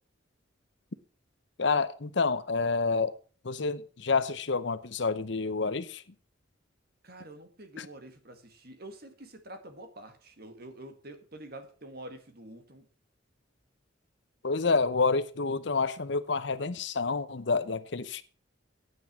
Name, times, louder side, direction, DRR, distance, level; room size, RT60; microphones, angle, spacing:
voice 1, 1.6-3.1 3.4-6.0 7.8-7.9 14.4-18.2, left 4 dB, 60° left, 0.8 m, -28 dB
voice 2, 7.0-12.8, right 1 dB, 50° right, 1.8 m, -47 dB
9.4 x 9.0 x 6.0 m
head